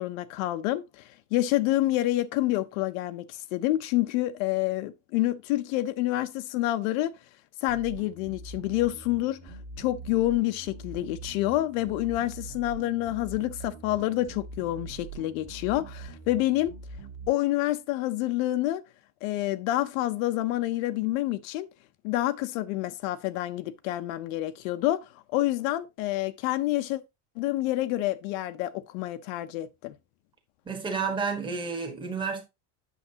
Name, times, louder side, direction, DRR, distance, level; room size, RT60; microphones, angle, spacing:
voice 1, 0.0-7.2 7.6-16.7 17.3-18.8 19.2-21.7 22.0-27.0 27.4-29.9, left 15 dB, 65° left, 0.7 m, -28 dB
sound 1, 7.7-17.3, right 3 dB, 35° right, 1.4 m, -43 dB
voice 2, 30.6-32.4, right 5 dB, 10° right, 1.3 m, -30 dB
8.4 x 6.6 x 2.8 m
cardioid pair, 170°, 44 cm